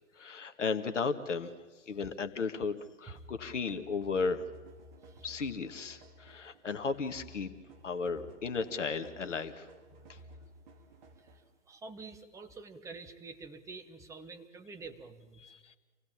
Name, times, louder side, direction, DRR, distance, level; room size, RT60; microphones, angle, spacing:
voice 1, 0.2-1.5 1.9-4.5 5.2-7.5 7.8-9.7 10.1-10.2 15.4-15.8, left 4 dB, 70° left, 9 dB, 1.9 m, -35 dB
sound 1, 3.2-11.6, equal, 35° right, 2.2 m, -55 dB
voice 2, 5.0-5.3 11.2-15.4, right 4 dB, 10° right, 8 dB, 1.1 m, -48 dB
27.0 x 17.0 x 7.4 m, 1.3 s
figure-of-eight pair, 125°, 38 cm